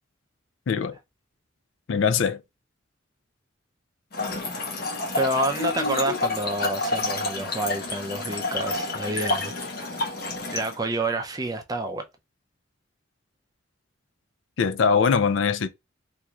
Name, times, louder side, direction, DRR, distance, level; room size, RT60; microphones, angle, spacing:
voice 1, 1.9-2.4 14.6-15.7, left 6 dB, 70° left, 0.4 m, -22 dB
Trickle dribble / Fill (with liquid), 4.1-10.8, left 2 dB, 50° left, 1.0 m, -29 dB
voice 2, 5.1-9.5 9.9-10.1 10.5-12.0, right 1 dB, 20° right, 0.5 m, -28 dB
3.5 x 2.6 x 2.9 m
head